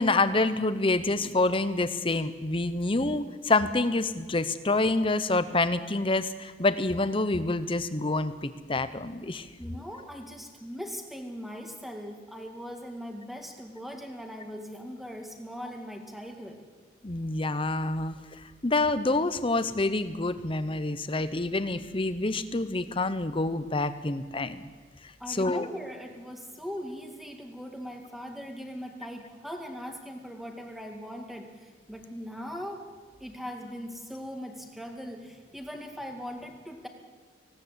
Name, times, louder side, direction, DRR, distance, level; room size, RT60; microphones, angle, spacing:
voice 1, 0.0-9.5 17.0-18.2 18.6-24.7 25.3-25.7, left 2 dB, 30° left, 12 dB, 0.9 m, -27 dB
voice 2, 9.6-16.6 25.2-32.9 33.2-36.9, equal, ahead, 3 dB, 2.1 m, -40 dB
19.5 x 17.5 x 8.2 m, 1.5 s
head